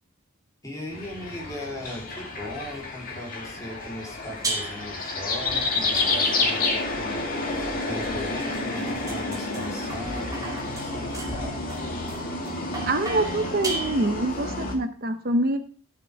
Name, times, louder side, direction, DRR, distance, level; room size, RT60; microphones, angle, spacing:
voice 1, 0.6-7.3 7.7-11.6, left 1 dB, 15° left, -2 dB, 3.1 m, -38 dB
sound 1, 0.9-14.8, left 3 dB, 40° left, 2.2 m, -30 dB
sound 2, 4.4-5.0 5.9-6.6 7.6-14.4, right 2 dB, 15° right, 2.3 m, -36 dB
voice 2, 12.9-15.6, right 2 dB, 45° right, 7 dB, 0.8 m, -25 dB
13.0 x 6.8 x 4.6 m, 0.41 s
head